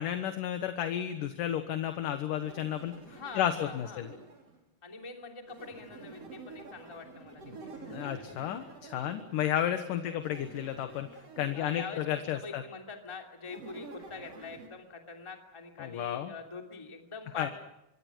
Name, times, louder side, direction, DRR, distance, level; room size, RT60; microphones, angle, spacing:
voice 1, 0.0-2.9 3.4-4.1 7.9-11.1 11.4-12.6 15.8-16.3 17.4-17.5, left 10 dB, 65° left, 7 dB, 2.7 m, -32 dB
sound 1, 2.4-4.6 5.5-9.6 10.2-12.4 13.4-14.7, right 3 dB, 40° right, 4.6 m, -49 dB
voice 2, 3.1-4.1 4.8-7.9 9.9-10.2 11.5-17.5, left 4 dB, 10° left, 2 dB, 2.2 m, -44 dB
25.0 x 25.0 x 6.2 m, 0.90 s
omnidirectional pair, 4.4 m